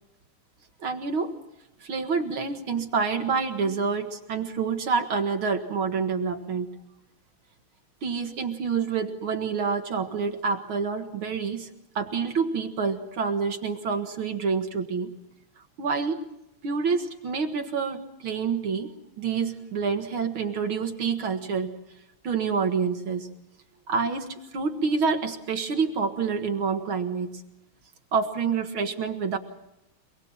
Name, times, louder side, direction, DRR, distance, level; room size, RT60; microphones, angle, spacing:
voice 1, 0.8-1.3 1.8-6.7 8.0-11.7 12.0-15.1 15.8-16.2 16.6-21.7 22.2-23.3 23.9-27.4 28.1-29.4, right 5 dB, 70° right, 5 dB, 2.5 m, -27 dB
28.0 x 20.0 x 7.4 m, 0.87 s
omnidirectional pair, 2.4 m